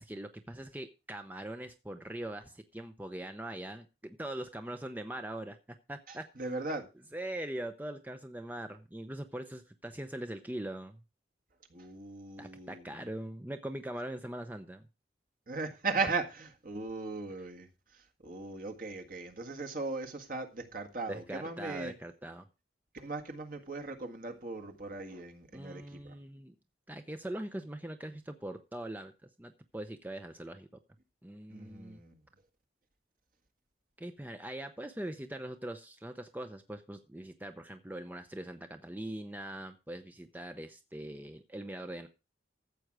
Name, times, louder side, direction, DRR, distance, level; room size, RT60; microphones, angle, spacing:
voice 1, 0.0-5.6 5.9-6.2 7.1-11.0 12.4-14.8 21.1-22.5 25.5-26.5 26.9-29.1 29.4-30.7 31.2-32.0 34.0-42.1, right 1 dB, 10° right, 0.6 m, -42 dB
voice 2, 6.1-6.9 11.7-13.1 15.5-17.7 17.9-21.9 22.9-26.1 31.5-32.2, right 3 dB, 50° right, 1.8 m, -38 dB
14.0 x 7.7 x 4.8 m
head